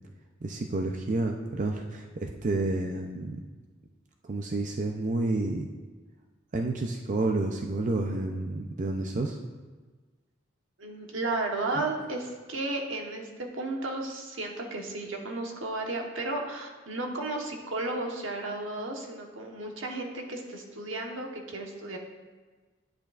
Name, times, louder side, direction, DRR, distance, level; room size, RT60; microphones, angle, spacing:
voice 1, 0.4-3.4 4.2-5.7 6.5-9.4, right 2 dB, 40° right, 3 dB, 0.5 m, -30 dB
voice 2, 10.8-22.0, right 2 dB, 75° right, 1 dB, 1.1 m, -34 dB
10.5 x 8.7 x 2.4 m, 1.3 s
head